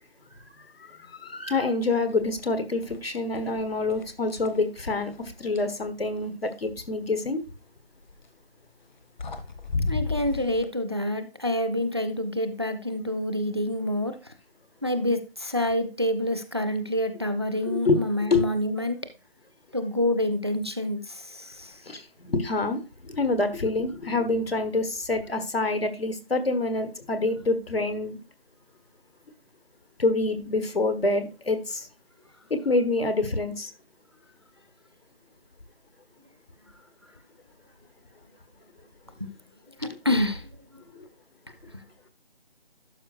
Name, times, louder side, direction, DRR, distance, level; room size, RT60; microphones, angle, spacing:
voice 1, 0.8-7.4 17.7-18.0 18.3-18.5 21.8-28.2 30.0-31.9 32.5-33.7, left 3 dB, 75° left, 9 dB, 1.5 m, -26 dB
sound 1, 2.3-2.5 2.8-3.5 3.9-5.8 8.0-8.3 8.9-9.0 9.2-10.7, left 3 dB, 50° left, 1.0 m, -33 dB
voice 2, 9.9-14.2 14.8-19.0 19.7-21.8 39.2-39.3 39.8-40.5, left 1 dB, 25° right, 10 dB, 0.4 m, -27 dB
11.5 x 5.3 x 2.5 m, 0.32 s
figure-of-eight pair, 160°, 30 cm